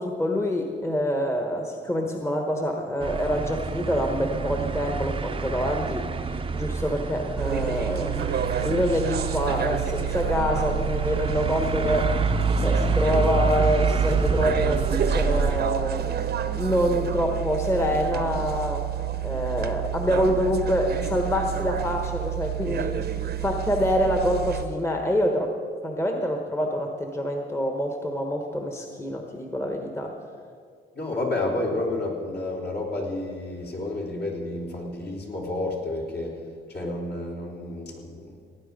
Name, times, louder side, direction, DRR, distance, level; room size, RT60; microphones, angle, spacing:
voice 1, 0.0-12.2 12.6-16.3 16.5-18.9 19.2-25.5 25.8-30.2 36.8-36.9, equal, 15° left, 3 dB, 1.2 m, -26 dB
sound 1, 3.0-15.6, right 4 dB, 25° right, 0.7 m, -28 dB
sound 2, 7.4-24.6, right 10 dB, 55° right, 0.9 m, -29 dB
voice 2, 30.9-36.4 36.7-38.5, left 2 dB, 55° left, -2 dB, 3.4 m, -30 dB
17.5 x 9.5 x 5.3 m, 2.1 s
cardioid pair, 90°, 20 cm